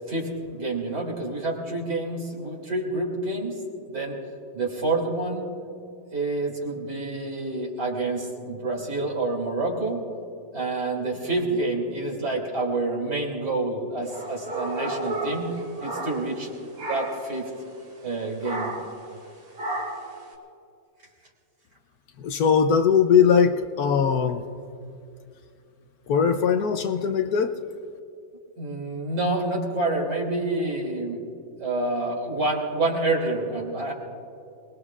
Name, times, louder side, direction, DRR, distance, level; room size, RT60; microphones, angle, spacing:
voice 1, 0.1-3.6 3.9-4.2 4.5-5.5 6.1-10.0 10.5-15.5 15.8-16.5 16.8-17.5 18.0-18.7 28.6-31.2 31.6-33.9, right 2 dB, 60° right, -3 dB, 3.4 m, -28 dB
sound 1, 14.1-16.5 16.8-17.3 18.4-19.0 19.6-20.1, right 1 dB, 85° right, 3.2 m, -32 dB
voice 2, 22.2-24.4 26.1-27.5, left 6 dB, 65° left, 8 dB, 1.0 m, -20 dB
28.0 x 20.0 x 2.4 m, 2.5 s
omnidirectional pair, 2.1 m